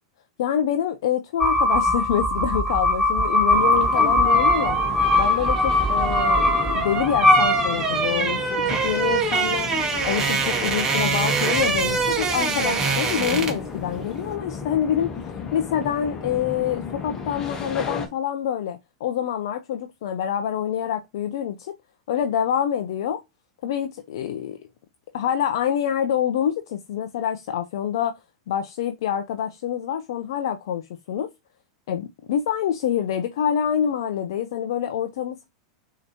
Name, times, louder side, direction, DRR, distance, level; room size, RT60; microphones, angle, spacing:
voice 1, 0.4-4.8 5.2-9.7 10.0-15.1 15.5-21.8 22.1-23.2 23.6-24.6 25.1-28.1 28.5-31.3 31.9-35.5, left 9 dB, 65° left, 0.4 m, -26 dB
sound 1, 1.4-8.2, left 1 dB, 10° right, 0.6 m, -20 dB
sound 2, 3.5-18.1, left 5 dB, 25° left, 1.1 m, -35 dB
sound 3, 3.7-13.7 14.0-14.2, right 5 dB, 25° right, 1.1 m, -25 dB
6.5 x 2.9 x 2.7 m
hypercardioid pair, 100°, 3 cm